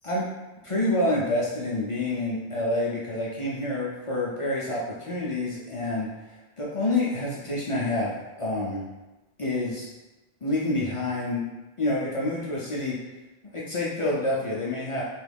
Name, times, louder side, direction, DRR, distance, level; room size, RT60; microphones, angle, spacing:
voice 1, 0.6-6.1 6.6-8.8 9.4-9.9 10.4-11.4 11.8-13.0 13.5-15.0, left 2 dB, 45° left, -6 dB, 0.4 m, -27 dB
3.0 x 2.3 x 3.3 m, 1.1 s
omnidirectional pair, 1.0 m